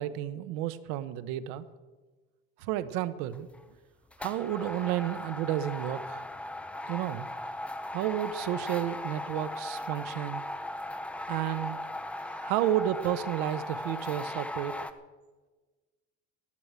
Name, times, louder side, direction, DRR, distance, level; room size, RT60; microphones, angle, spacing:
voice 1, 0.0-1.7 2.6-3.5 4.2-6.2 6.9-7.3 7.9-10.4 11.3-11.8 12.2-14.8, right 12 dB, 90° right, 13 dB, 1.1 m, -31 dB
sound 1, 3.3-3.6 4.1-14.9, left 1 dB, 5° left, 0.5 m, -38 dB
14.0 x 11.5 x 8.1 m, 1.3 s
cardioid pair, 165°, 30 cm